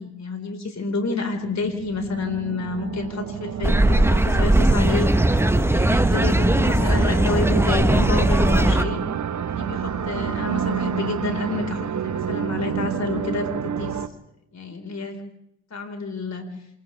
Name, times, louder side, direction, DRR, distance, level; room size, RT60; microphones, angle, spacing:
voice 1, 0.0-5.1 5.7-9.0 9.5-14.0 14.5-15.2 15.7-16.5, left 3 dB, 45° left, 5 dB, 4.7 m, -29 dB
sound 1, 1.3-14.1, right 8 dB, 50° right, 1.2 m, -29 dB
sound 2, 3.6-8.8, right 1 dB, 5° right, 1.0 m, -19 dB
28.0 x 27.5 x 3.5 m, 0.81 s
supercardioid pair, 60°, 37 cm